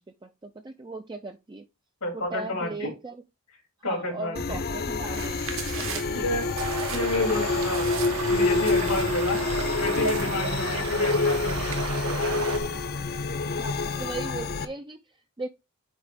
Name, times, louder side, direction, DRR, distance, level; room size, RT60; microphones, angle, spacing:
voice 1, 0.0-1.7 2.1-3.2 3.8-6.3 9.6-10.2 13.6-15.0 15.4-15.5, right 3 dB, 20° right, 0.5 m, -38 dB
voice 2, 2.0-2.9 3.8-4.6 5.6-6.4 6.9-9.4 9.7-12.4, left 2 dB, 90° left, 3.5 m, -31 dB
sound 1, 4.4-14.7, left 3 dB, 45° left, 0.7 m, -27 dB
sound 2, 5.1-8.3 8.6-9.4 9.7-11.9 12.3-12.8, right 7 dB, 65° right, 1.4 m, -41 dB
sound 3, 6.6-12.6, right 4 dB, 85° right, 1.6 m, -33 dB
9.0 x 3.1 x 4.7 m
head